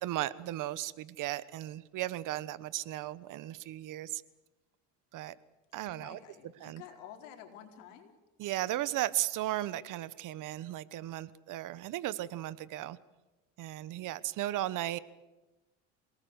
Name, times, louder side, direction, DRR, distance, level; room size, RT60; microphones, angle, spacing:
voice 1, 0.0-4.2 5.1-5.3 5.7-6.2 6.6-6.8 8.4-13.0 13.6-15.0, right 14 dB, 55° right, 18 dB, 1.2 m, -36 dB
voice 2, 5.8-8.1, left 9 dB, 85° left, 4 dB, 4.4 m, -51 dB
27.0 x 19.0 x 8.2 m, 1.1 s
supercardioid pair, 110°, 37 cm